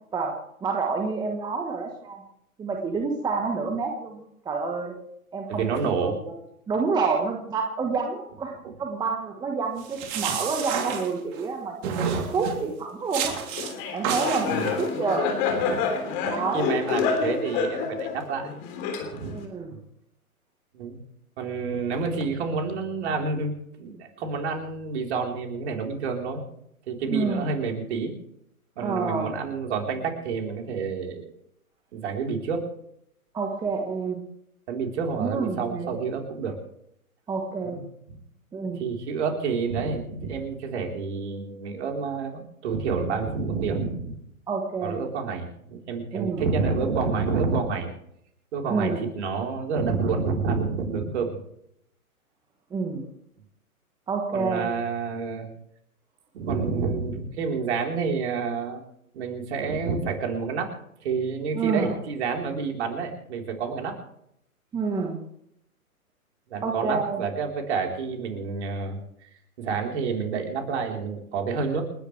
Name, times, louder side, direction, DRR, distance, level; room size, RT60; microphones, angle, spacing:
voice 1, 0.6-2.2 2.6-4.9 5.3-6.3 6.7-8.5 8.8-13.4 13.9-15.3 16.2-16.7 19.3-19.8 27.1-27.5 28.8-29.3 33.3-34.2 35.2-36.0 37.3-37.8 38.5-38.8 44.5-45.1 46.1-46.4 48.7-49.0 52.7-53.1 54.1-54.7 61.5-62.0 64.7-65.2 66.6-67.2, right 4 dB, 10° right, 2 dB, 1.3 m, -28 dB
voice 2, 5.5-6.2 14.4-14.7 15.5-15.8 16.2-18.5 19.1-19.4 19.7-19.8 20.7-21.0 21.4-26.4 26.9-28.1 28.8-31.3 31.9-32.7 34.7-36.6 37.6-37.8 38.6-44.1 44.8-47.9 48.5-51.4 54.3-55.5 56.3-58.8 59.1-60.7 61.0-64.0 66.5-69.0 69.6-71.8, right 5 dB, 50° right, 1 dB, 4.0 m, -29 dB
sound 1, 9.8-11.5 11.8-12.6 13.1-13.7 14.0-14.9, right 6 dB, 30° right, 3.2 m, -30 dB
Laughter, 13.6-19.4, left 5 dB, 30° left, 3.4 m, -28 dB
29.0 x 10.5 x 3.3 m, 0.75 s
hypercardioid pair, 130°, 44 cm